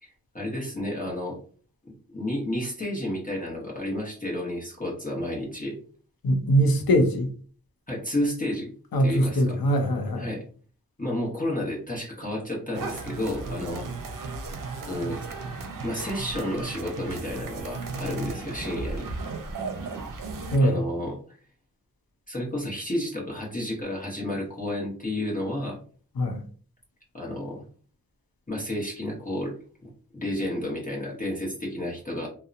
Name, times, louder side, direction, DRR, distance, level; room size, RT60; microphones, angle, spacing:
voice 1, 0.0-1.4 1.8-5.8 7.9-8.7 9.0-9.6 10.2-10.4 11.0-13.9 14.8-15.2 15.8-19.1 20.6-21.4 22.3-25.8 27.1-27.6 28.5-29.5 29.8-32.3, left 1 dB, 25° left, -4 dB, 0.9 m, -31 dB
voice 2, 6.2-7.3 8.9-10.3 20.5-20.9 26.2-26.4, equal, 75° left, 6 dB, 0.7 m, -22 dB
sound 1, 12.7-20.6, right 3 dB, 60° right, 0.6 m, -35 dB
2.8 x 2.0 x 2.4 m, 0.43 s
cardioid pair, 45°, 36 cm